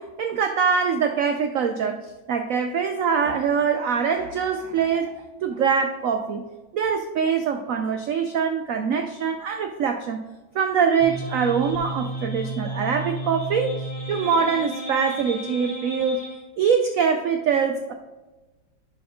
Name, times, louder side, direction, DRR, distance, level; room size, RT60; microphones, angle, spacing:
voice 1, 0.0-5.1 5.4-6.4 6.7-10.2 10.5-13.7 14.1-16.2 16.6-17.9, right 6 dB, 90° right, 6 dB, 0.7 m, -23 dB
sound 1, 11.0-16.4, right 1 dB, 20° left, 1.5 m, -33 dB
11.0 x 4.4 x 3.7 m, 1.2 s
omnidirectional pair, 2.1 m